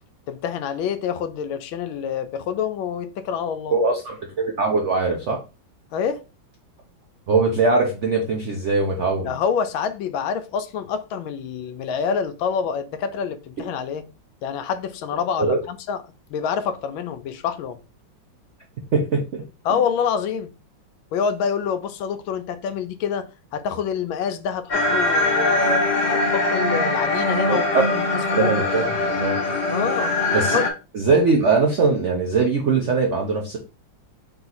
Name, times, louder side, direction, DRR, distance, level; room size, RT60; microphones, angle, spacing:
voice 1, 0.3-3.7 5.9-6.2 9.2-14.1 14.4-16.0 16.3-17.8 19.6-20.5 21.1-27.6 27.9-28.5 29.7-30.1 30.5-30.7, left 7 dB, 90° left, 1.4 m, -26 dB
voice 2, 3.7-5.4 7.3-9.4 15.4-15.6 18.9-19.4 27.5-27.8 28.3-29.4 30.3-30.6 30.9-33.6, right 4 dB, 75° right, 0.6 m, -21 dB
sound 1, 24.7-30.7, left 2 dB, 75° left, 0.4 m, -22 dB
3.6 x 2.9 x 3.9 m
omnidirectional pair, 2.1 m